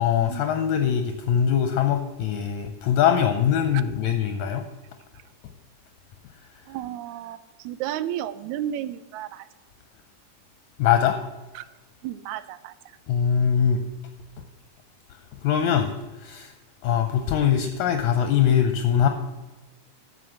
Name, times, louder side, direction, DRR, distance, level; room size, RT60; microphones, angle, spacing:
voice 1, 0.0-4.6 10.8-11.2 13.1-13.8 15.4-15.9 16.2-16.5 16.8-19.1, left 8 dB, 75° left, 7 dB, 2.0 m, -22 dB
voice 2, 6.7-9.5 11.5-11.6 12.0-13.0, right 11 dB, 80° right, 15 dB, 1.8 m, -33 dB
13.0 x 5.9 x 7.8 m, 1.2 s
omnidirectional pair, 3.6 m